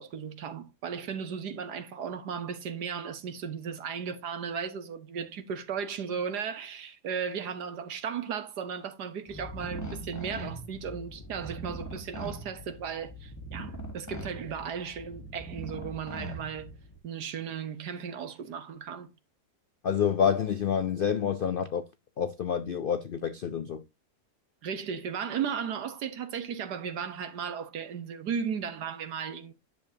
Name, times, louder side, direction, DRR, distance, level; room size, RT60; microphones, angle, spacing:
voice 1, 0.0-16.8 17.0-19.1 24.6-29.5, right 7 dB, 85° right, 1.7 m, -35 dB
sound 1, 9.3-17.0, right 1 dB, 15° left, 0.9 m, -41 dB
voice 2, 19.8-21.8 22.2-23.8, left 7 dB, 80° left, 0.5 m, -28 dB
10.5 x 6.9 x 2.7 m
omnidirectional pair, 1.7 m